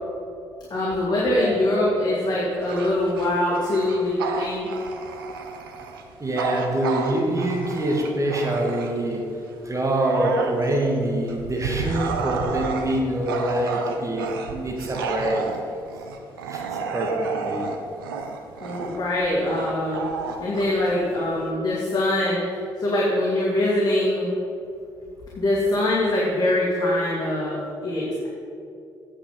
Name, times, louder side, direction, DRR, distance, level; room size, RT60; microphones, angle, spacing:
voice 1, 0.7-5.0 18.6-20.1 20.4-22.4 22.8-24.3 25.4-28.3, left 1 dB, 35° left, -5 dB, 2.2 m, -23 dB
Bark / Growling, 2.6-9.1 9.6-21.5, right 5 dB, 80° right, 0.6 m, -32 dB
voice 2, 6.2-9.2 9.6-15.4 16.5-16.6 16.9-17.6, right 1 dB, 25° right, 0 dB, 1.9 m, -25 dB
9.0 x 7.3 x 5.4 m, 2.5 s
figure-of-eight pair, 40°, 12 cm